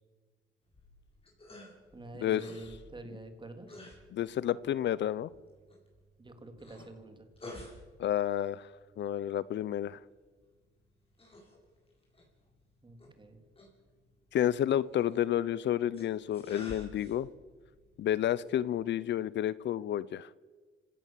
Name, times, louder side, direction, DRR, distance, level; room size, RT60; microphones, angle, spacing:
sound 1, 0.6-19.4, left 2 dB, 30° left, 7.4 m, -54 dB
voice 1, 1.9-3.9 6.2-7.3 12.8-13.4, right 2 dB, 25° right, 6 dB, 3.6 m, -47 dB
voice 2, 4.1-5.3 8.0-8.7 9.0-10.0 14.3-17.3 18.0-20.3, left 11 dB, 65° left, 20 dB, 0.7 m, -30 dB
26.0 x 17.0 x 7.5 m, 1.4 s
cardioid pair, 90°, 20 cm